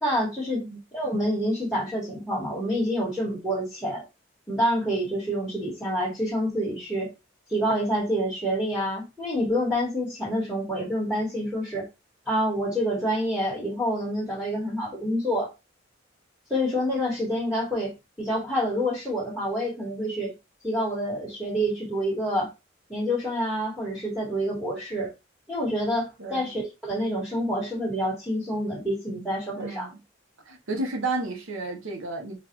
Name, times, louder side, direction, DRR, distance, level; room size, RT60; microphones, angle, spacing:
voice 1, 0.0-0.6 0.9-4.0 4.5-7.1 7.5-11.9 12.3-15.5 16.5-20.3 20.6-22.5 22.9-25.1 25.5-29.9, equal, 5° right, 1.5 m, -27 dB
voice 2, 26.2-26.5 29.5-30.0 30.5-32.4, right 2 dB, 75° right, 0.9 m, -32 dB
4.0 x 2.4 x 2.9 m
head